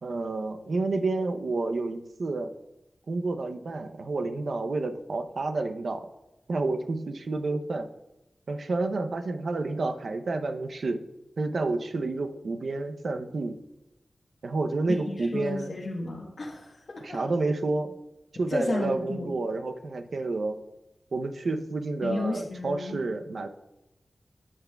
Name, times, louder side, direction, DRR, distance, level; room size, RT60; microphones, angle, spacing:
voice 1, 0.0-2.5 3.1-6.1 6.5-7.9 8.5-11.0 11.4-13.6 14.4-15.7 17.0-17.9 18.4-20.6 21.1-23.5, right 3 dB, 80° right, 6 dB, 0.6 m, -29 dB
voice 2, 15.1-17.2 18.5-19.3 22.0-23.0, left 2 dB, 65° left, -2 dB, 1.2 m, -33 dB
16.5 x 6.0 x 2.3 m, 0.95 s
cardioid pair, 55°, 0 cm